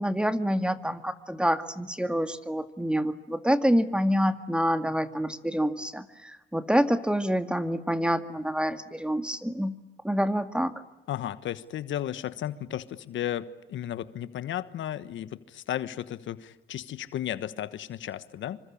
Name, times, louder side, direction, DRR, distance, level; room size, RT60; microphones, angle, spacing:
voice 1, 0.0-9.7 10.0-10.7, equal, 5° right, 10 dB, 1.9 m, -27 dB
voice 2, 11.1-18.6, left 11 dB, 75° left, 14 dB, 1.4 m, -34 dB
27.5 x 25.0 x 8.6 m, 0.99 s
cardioid pair, 90°, 20 cm